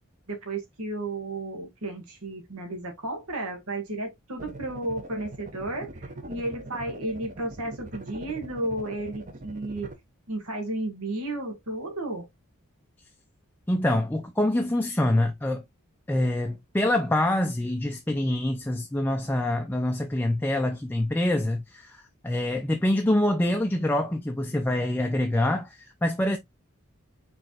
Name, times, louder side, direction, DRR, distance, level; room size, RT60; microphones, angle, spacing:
voice 1, 0.3-9.9 10.3-12.3, right 2 dB, 85° right, 1.5 m, -33 dB
sound 1, 4.4-9.9, right 2 dB, 35° right, 0.7 m, -41 dB
voice 2, 13.7-15.6 16.1-26.4, left 1 dB, 10° left, 0.3 m, -25 dB
4.9 x 3.4 x 2.8 m
head